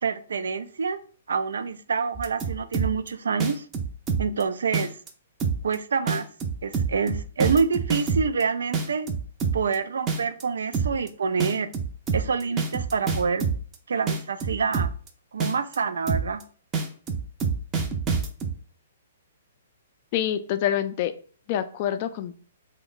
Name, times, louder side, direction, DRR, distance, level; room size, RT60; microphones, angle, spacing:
voice 1, 0.0-1.0 1.3-3.7 4.2-4.9 5.6-6.3 6.6-9.1 9.5-11.7 12.1-13.5 13.9-14.9 15.3-16.4, right 5 dB, 85° right, 11 dB, 0.3 m, -27 dB
sound 1, 2.1-3.1 3.4-4.4 4.7-5.1 5.4-5.7 6.1-8.4 8.7-9.7 10.1-10.4 10.7-11.1 11.4-13.7 14.1-15.1 15.4-15.8 16.1-16.4 16.7-18.5, right 5 dB, 20° right, 0.5 m, -26 dB
voice 2, 20.1-21.1 21.5-22.3, left 10 dB, 40° left, 11 dB, 0.3 m, -26 dB
2.9 x 2.1 x 3.9 m, 0.44 s
hypercardioid pair, 145°, 0 cm